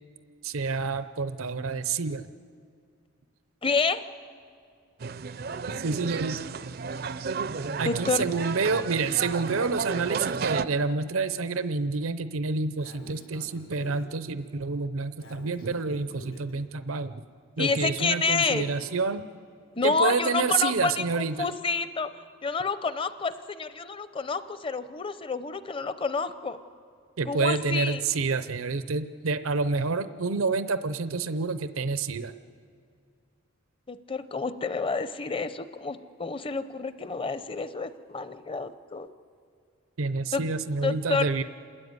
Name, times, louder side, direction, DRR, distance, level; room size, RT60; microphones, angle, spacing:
voice 1, 0.4-2.3 5.8-6.4 7.8-17.2 17.6-19.2 19.8-21.5 27.2-32.3 40.0-41.4, right 4 dB, 85° right, 13 dB, 0.7 m, -28 dB
voice 2, 3.6-4.0 7.8-8.3 17.6-18.7 19.8-22.1 22.4-26.6 27.3-28.0 33.9-39.1 40.3-40.4 40.8-41.3, left 4 dB, 25° left, 12 dB, 0.7 m, -29 dB
sound 1, 5.0-10.7, right 5 dB, 45° right, 0.4 m, -32 dB
Breathing, 12.8-14.1 15.2-16.5 17.6-18.9, left 1 dB, 85° left, 3.3 m, -49 dB
27.5 x 13.0 x 9.6 m, 2.3 s
head